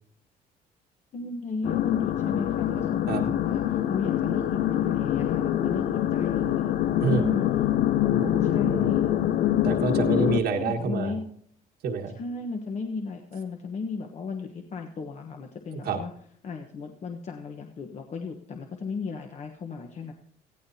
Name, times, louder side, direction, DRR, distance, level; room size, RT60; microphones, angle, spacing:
voice 1, 1.1-6.7 7.1-7.8 8.4-9.2 10.3-11.2 12.2-16.1 16.4-20.1, left 4 dB, 40° left, 4 dB, 1.1 m, -35 dB
sound 1, 1.6-10.4, left 11 dB, 65° left, 0.7 m, -25 dB
voice 2, 8.1-8.9 9.6-11.2 11.8-12.1 15.8-16.0, right 5 dB, 70° right, 2 dB, 1.7 m, -28 dB
18.0 x 14.5 x 2.8 m, 0.68 s
cardioid pair, 110°, 17 cm